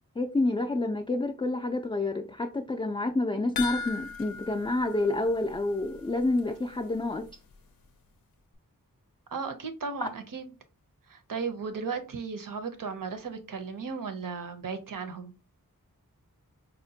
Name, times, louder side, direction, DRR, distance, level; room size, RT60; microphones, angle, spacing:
voice 1, 0.2-7.3 10.0-10.1, left 2 dB, 15° left, 0.3 m, -28 dB
sound 1, 3.6-6.1 6.4-6.5 6.9-7.0, left 5 dB, 85° left, 0.5 m, -38 dB
voice 2, 9.3-10.5 11.1-15.3, right 5 dB, 70° right, 0.6 m, -35 dB
4.1 x 2.1 x 2.7 m
wide cardioid pair, 50°, 35 cm